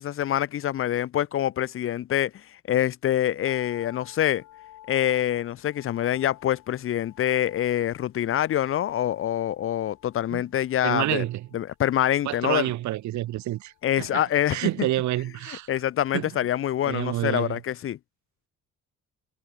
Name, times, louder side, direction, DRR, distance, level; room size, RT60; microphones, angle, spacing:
voice 1, 0.0-2.3 2.7-4.4 4.9-11.2 11.5-12.7 13.8-14.7 15.7-18.0, left 11 dB, 45° left, 0.4 m, -25 dB
sound 1, 3.5-15.7 16.0-16.1, left 13 dB, 75° left, 4.2 m, -53 dB
voice 2, 10.8-11.5 12.2-14.2 14.5-15.7 16.1-16.3 16.8-17.6, right 15 dB, 70° right, 0.7 m, -28 dB
cardioid pair, 90°, 30 cm